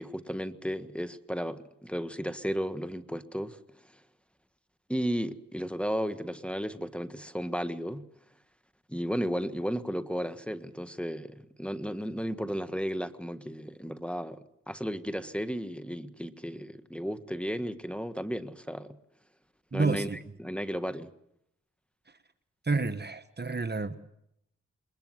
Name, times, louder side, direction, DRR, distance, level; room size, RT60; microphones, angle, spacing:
voice 1, 0.0-3.6 4.9-8.1 8.9-14.4 14.7-19.0 19.7-20.1 20.4-21.1, equal, 5° left, 1.5 m, -34 dB
voice 2, 19.7-20.2 22.6-23.9, right 3 dB, 35° right, 1.3 m, -29 dB
22.0 x 20.5 x 7.8 m
supercardioid pair, 40°, 30 cm